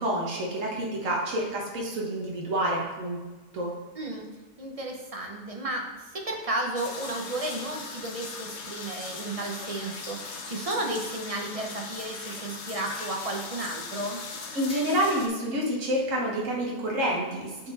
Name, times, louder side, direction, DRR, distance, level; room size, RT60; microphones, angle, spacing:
voice 1, 0.0-3.2 3.5-3.7 14.5-17.7, right 1 dB, 65° right, -2 dB, 1.7 m, -28 dB
voice 2, 3.9-4.3 4.6-14.2, right 2 dB, 30° right, 1 dB, 0.8 m, -33 dB
sound 1, 6.7-15.3, left 4 dB, 60° left, 1.0 m, -39 dB
8.3 x 4.3 x 4.1 m, 1.2 s
omnidirectional pair, 1.4 m